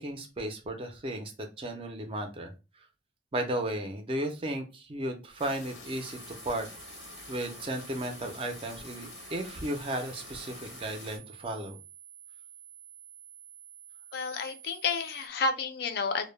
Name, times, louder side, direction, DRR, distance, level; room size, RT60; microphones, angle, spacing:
voice 1, 0.0-2.8 3.3-6.7 7.3-11.8, right 1 dB, 30° right, 4 dB, 0.4 m, -35 dB
sound 1, 5.4-11.2, left 4 dB, 85° left, 0.7 m, -47 dB
sound 2, 5.8-15.3, right 9 dB, 85° right, 0.5 m, -51 dB
voice 2, 14.1-16.3, left 4 dB, 60° left, 7 dB, 0.4 m, -30 dB
2.1 x 2.0 x 3.1 m, 0.29 s
head